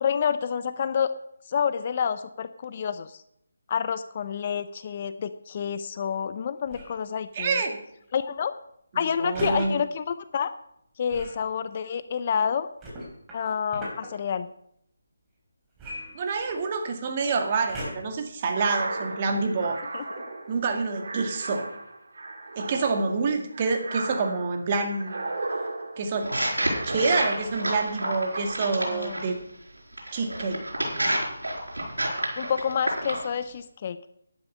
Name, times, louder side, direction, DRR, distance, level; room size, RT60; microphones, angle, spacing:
voice 1, 0.0-1.1 1.5-3.2 3.7-7.6 8.1-8.5 8.9-10.5 11.0-12.7 13.3-14.5 19.9-20.0 28.9-29.2 32.4-34.0, left 7 dB, 35° left, 12 dB, 0.6 m, -28 dB
sound 1, 6.6-7.0 9.3-9.7 11.1-11.4 12.8-14.1 15.8-16.7 17.7-18.2 18.9-19.0, equal, 15° right, 3.9 m, -38 dB
voice 2, 7.3-7.8 8.9-9.8 16.1-19.8 20.5-21.7 22.6-25.3 26.0-26.3 26.8-29.3 30.1-30.6, right 4 dB, 30° right, 4 dB, 1.9 m, -27 dB
sound 2, 18.4-27.5 27.9-29.0, right 2 dB, 60° right, 2.5 m, -36 dB
sound 3, 26.2-29.3 30.0-33.3, right 1 dB, 85° right, 4.8 m, -29 dB
11.0 x 10.5 x 5.6 m, 0.74 s
figure-of-eight pair, 160°, 0 cm